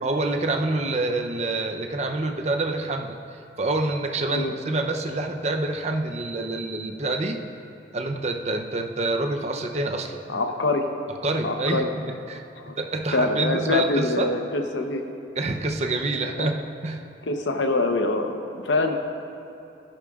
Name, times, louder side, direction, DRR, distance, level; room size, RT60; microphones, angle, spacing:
voice 1, 0.0-7.4 7.9-10.4 11.2-12.4 12.8-14.3 15.4-16.6 16.8-17.0, right 2 dB, 35° right, 4 dB, 0.6 m, -27 dB
voice 2, 10.3-10.8 11.4-11.9 12.6-12.7 13.1-15.0 16.4-16.5 17.3-18.9, left 2 dB, 85° left, 5 dB, 0.9 m, -24 dB
15.0 x 10.0 x 2.4 m, 2.9 s
head